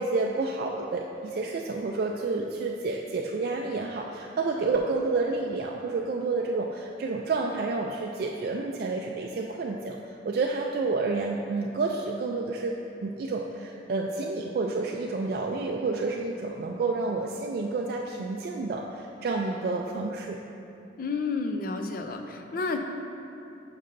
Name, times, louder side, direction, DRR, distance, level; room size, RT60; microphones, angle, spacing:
voice 1, 0.0-10.0 10.2-12.7 13.0-20.4, right 3 dB, 55° right, 0 dB, 0.3 m, -29 dB
voice 2, 21.0-22.8, left 4 dB, 50° left, 5 dB, 0.4 m, -30 dB
9.0 x 5.4 x 2.6 m, 2.9 s
head